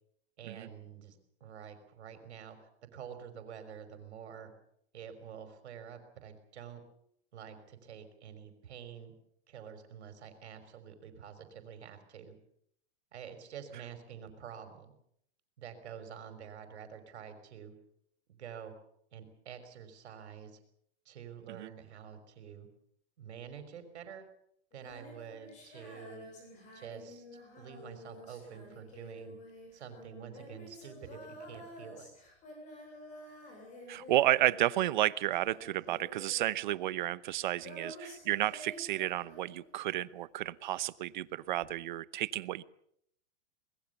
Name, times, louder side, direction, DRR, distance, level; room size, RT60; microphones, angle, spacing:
voice 1, 0.4-4.5 4.9-6.8 7.3-9.1 9.5-12.3 13.1-14.9 15.6-17.7 18.3-18.7 19.1-20.6 21.1-22.7 23.2-24.3 24.7-26.3 26.7-27.2 27.6-29.4 29.7-32.1, right 8 dB, 70° right, 8 dB, 5.6 m, -48 dB
Female singing, 24.7-40.1 41.6-41.7, left 1 dB, 20° left, 7.7 m, -51 dB
voice 2, 33.9-42.6, right 14 dB, 45° right, 19 dB, 0.8 m, -32 dB
24.0 x 21.0 x 7.0 m, 0.71 s
supercardioid pair, 170°, 34 cm